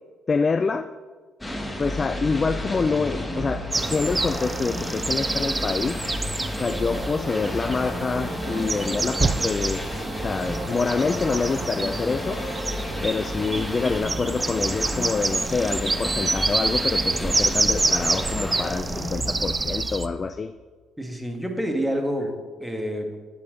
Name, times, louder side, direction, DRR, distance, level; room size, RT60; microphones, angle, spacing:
voice 1, 0.3-0.9 1.8-6.0 6.6-12.4 13.0-20.5, left 4 dB, 35° left, 11 dB, 0.4 m, -26 dB
sound 1, 1.4-20.4, left 1 dB, 10° left, 1.4 m, -31 dB
sound 2, 3.7-20.1, right 3 dB, 25° right, 0.5 m, -28 dB
sound 3, 6.5-14.0, right 3 dB, 85° right, 1.4 m, -40 dB
voice 2, 21.0-23.3, equal, 5° right, 3 dB, 1.6 m, -28 dB
11.5 x 7.5 x 3.9 m, 1.4 s
cardioid pair, 80°, 0 cm